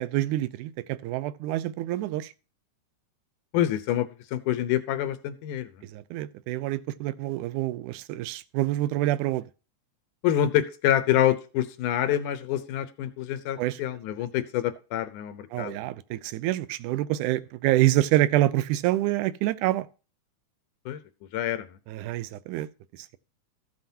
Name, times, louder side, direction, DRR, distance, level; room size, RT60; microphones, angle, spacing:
voice 1, 0.0-2.3 5.9-9.4 13.6-13.8 15.5-19.9 21.9-22.7, right 15 dB, 85° right, 2.1 m, -26 dB
voice 2, 3.5-5.7 10.2-15.8 20.9-21.0 21.3-21.8, left 11 dB, 90° left, 2.4 m, -26 dB
14.5 x 7.5 x 2.7 m
omnidirectional pair, 3.5 m